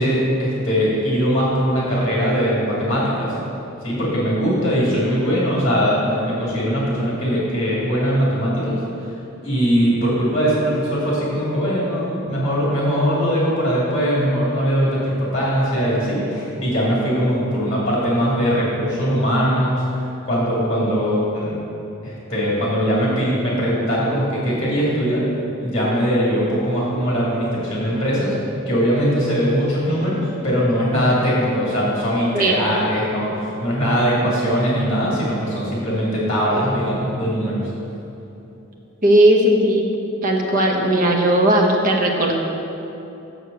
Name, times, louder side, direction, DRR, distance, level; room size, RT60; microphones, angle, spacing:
voice 1, 0.0-3.3 3.8-9.1 9.4-19.8 20.2-21.6 22.0-25.3 25.6-28.3 28.7-37.6, equal, 25° left, -6 dB, 2.1 m, -20 dB
voice 2, 39.0-39.8 40.2-42.4, right 1 dB, 40° right, 1 dB, 0.9 m, -16 dB
6.5 x 6.4 x 6.6 m, 2.9 s
head